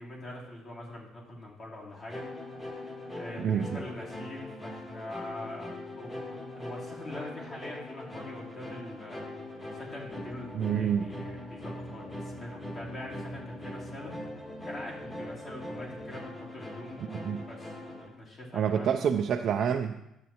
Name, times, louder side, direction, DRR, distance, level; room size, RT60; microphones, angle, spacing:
voice 1, 0.0-14.1 14.6-19.1, left 1 dB, 35° left, -4 dB, 2.6 m, -44 dB
sound 1, 2.1-18.1, left 1 dB, 20° left, 1.9 m, -41 dB
voice 2, 3.4-3.8 10.5-11.0 17.1-17.4 18.5-20.1, right 8 dB, 55° right, 3 dB, 0.5 m, -28 dB
10.5 x 7.4 x 2.9 m, 0.84 s
cardioid pair, 115°, 0 cm